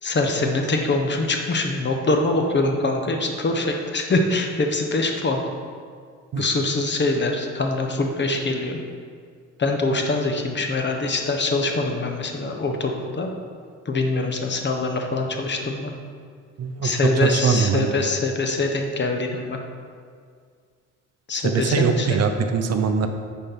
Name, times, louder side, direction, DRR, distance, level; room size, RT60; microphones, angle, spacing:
voice 1, 0.0-5.4 6.4-8.8 9.6-13.3 13.8-15.9 16.8-19.6 21.3-22.3, left 2 dB, 35° left, 3 dB, 1.1 m, -24 dB
voice 2, 16.6-16.9 17.2-17.9 21.4-23.1, right 5 dB, 55° right, 6 dB, 0.7 m, -21 dB
8.8 x 4.4 x 5.7 m, 2.1 s
cardioid pair, 90°, 30 cm